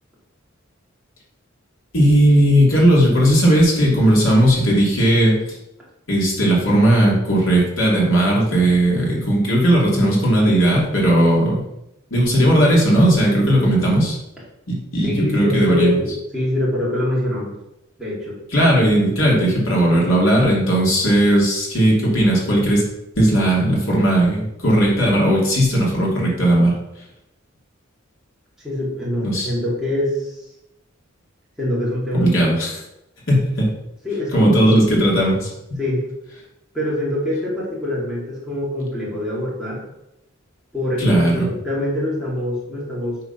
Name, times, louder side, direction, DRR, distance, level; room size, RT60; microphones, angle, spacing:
voice 1, 1.9-5.6 6.1-11.6 12.1-14.2 14.7-16.0 18.5-22.8 23.2-26.7 29.2-29.5 32.1-32.8 33.3-33.7 34.3-35.8 41.0-41.5, right 1 dB, 75° left, -4 dB, 2.8 m, -16 dB
voice 2, 15.0-17.6 18.0-18.4 28.6-30.4 31.6-32.3 34.0-34.7 35.8-36.1 36.7-39.8 40.7-43.2, left 1 dB, 5° right, -7 dB, 2.5 m, -24 dB
7.8 x 4.0 x 5.7 m, 0.86 s
head